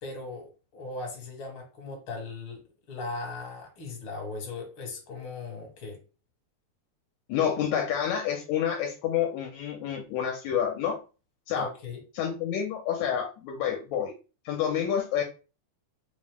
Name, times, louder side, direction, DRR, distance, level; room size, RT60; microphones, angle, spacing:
voice 1, 0.0-6.0 11.5-12.0, left 3 dB, 55° left, 1 dB, 1.9 m, -38 dB
voice 2, 7.3-11.0 11.5-11.7 12.1-14.1 14.5-15.2, left 9 dB, 80° left, 2 dB, 1.9 m, -28 dB
5.0 x 2.1 x 3.5 m, 0.33 s
omnidirectional pair, 3.3 m